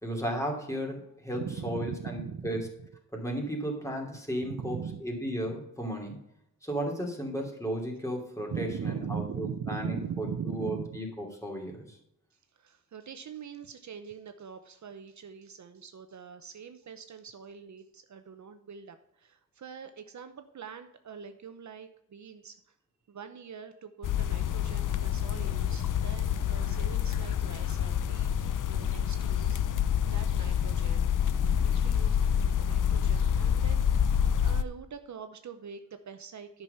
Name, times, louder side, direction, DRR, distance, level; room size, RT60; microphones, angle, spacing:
voice 1, 0.0-2.7 3.1-6.2 6.6-12.0, equal, 10° left, 0 dB, 2.7 m, -34 dB
voice 2, 1.3-2.9 4.4-5.0 8.5-11.0 12.6-22.7 23.1-36.6, right 7 dB, 55° right, 8 dB, 0.8 m, -42 dB
sound 1, 24.0-34.6, left 8 dB, 65° left, 0.7 m, -27 dB
10.5 x 6.2 x 5.6 m, 0.78 s
wide cardioid pair, 135°, 34 cm